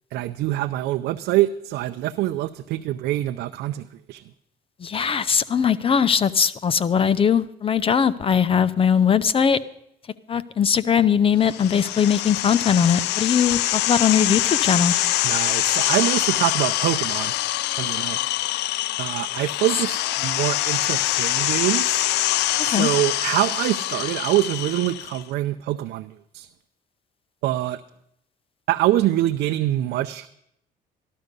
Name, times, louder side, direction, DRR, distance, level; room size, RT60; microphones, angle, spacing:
voice 1, 0.1-4.2 15.2-17.3 17.8-18.2 19.0-22.1 22.6-26.5 27.4-27.8 28.7-30.3, right 14 dB, 75° right, 8 dB, 0.6 m, -25 dB
voice 2, 4.8-9.6 10.3-14.9 22.7-22.9, left 7 dB, 35° left, 15 dB, 0.7 m, -20 dB
sound 1, 11.4-25.2, left 15 dB, 80° left, 0.5 m, -24 dB
14.5 x 12.5 x 5.3 m, 0.77 s
cardioid pair, 110°, 17 cm